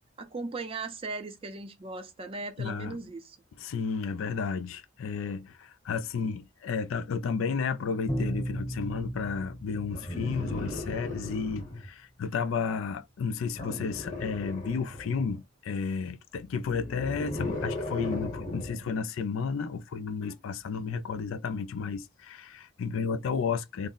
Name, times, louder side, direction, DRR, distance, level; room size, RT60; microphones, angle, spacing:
voice 1, 0.2-3.4, right 3 dB, 25° right, 0.4 m, -38 dB
voice 2, 2.6-3.0 3.6-23.9, left 5 dB, 75° left, 0.4 m, -32 dB
Bowed string instrument, 8.1-10.9, right 1 dB, 20° left, 0.6 m, -35 dB
sound 1, 9.9-11.9 13.5-15.3 16.6-18.9 20.2-20.3, left 2 dB, 40° left, 0.9 m, -36 dB
2.5 x 2.0 x 3.7 m
head